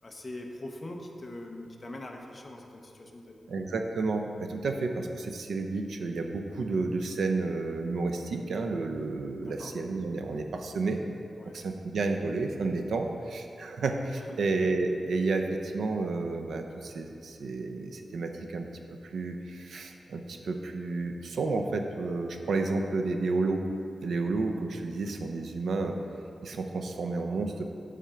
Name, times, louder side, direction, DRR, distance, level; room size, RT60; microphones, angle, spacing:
voice 1, 0.0-3.4 9.4-9.7 11.4-11.6 14.3-14.4, left 1 dB, 25° left, 1 dB, 0.8 m, -42 dB
voice 2, 3.5-11.0 11.5-18.7 19.1-23.6 24.0-26.0 26.4-27.6, right 3 dB, 85° right, 4 dB, 0.6 m, -31 dB
10.0 x 3.7 x 5.6 m, 2.7 s
wide cardioid pair, 150°, 0 cm